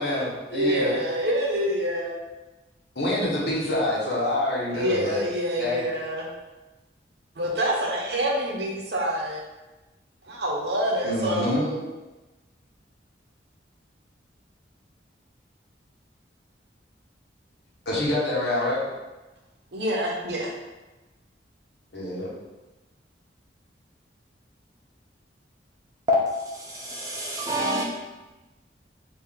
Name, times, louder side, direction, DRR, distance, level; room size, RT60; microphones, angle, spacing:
voice 1, 0.0-1.0 2.9-5.2 5.6-5.8 11.0-11.6 17.8-18.8 21.9-22.3, left 1 dB, 65° left, -6 dB, 1.3 m, -26 dB
voice 2, 0.5-2.2 4.7-6.3 7.4-9.4 10.3-11.9 19.7-20.5, equal, 65° right, -2 dB, 0.8 m, -27 dB
voice 3, 26.5-27.8, left 1 dB, 20° right, -4 dB, 0.7 m, -26 dB
4.5 x 2.8 x 3.6 m, 1.1 s
head